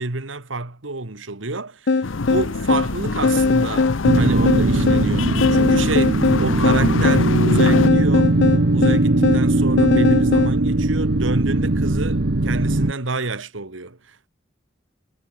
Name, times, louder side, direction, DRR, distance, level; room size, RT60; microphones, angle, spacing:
voice 1, 0.0-8.4 8.7-14.2, right 3 dB, 80° right, 1.9 m, -28 dB
sound 1, 1.9-10.6, left 4 dB, 60° left, 0.6 m, -20 dB
sound 2, 2.0-7.9, left 3 dB, 90° left, 0.8 m, -25 dB
sound 3, 4.0-12.9, right 2 dB, 60° right, 1.2 m, -19 dB
head